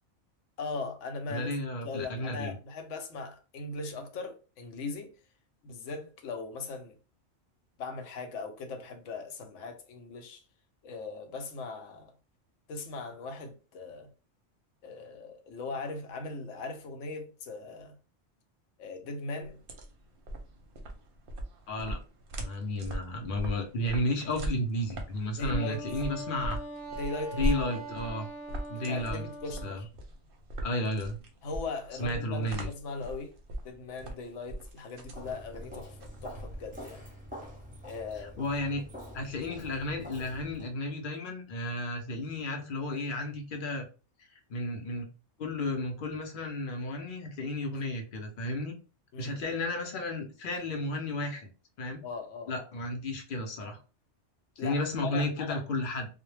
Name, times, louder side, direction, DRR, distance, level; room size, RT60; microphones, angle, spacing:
voice 1, 0.6-1.5 1.8-5.1 5.6-7.0 7.8-10.4 10.8-12.1 12.7-14.1 14.8-17.9 18.8-19.6 25.4-25.9 26.9-27.5 28.9-29.9 31.4-33.4 33.6-37.0 37.8-38.4 49.1-49.4 52.0-52.6 54.6-55.6, left 3 dB, 90° left, 0.9 m, -39 dB
voice 2, 1.3-2.5 21.7-22.0 22.4-26.6 27.3-28.3 28.7-29.3 29.6-29.8 30.6-31.2 32.0-32.7 38.1-38.8 39.1-43.8 44.2-45.1 45.4-48.7 49.2-51.5 51.8-52.0 52.5-53.8 54.6-56.1, left 1 dB, 55° left, 0.6 m, -33 dB
sound 1, 19.4-36.9, right 1 dB, 60° right, 0.7 m, -39 dB
Wind instrument woodwind instrument, 25.5-29.7, right 1 dB, 20° left, 0.8 m, -41 dB
Walk footsteps, 35.1-40.7, equal, 10° right, 0.5 m, -46 dB
2.1 x 2.0 x 3.1 m
omnidirectional pair, 1.2 m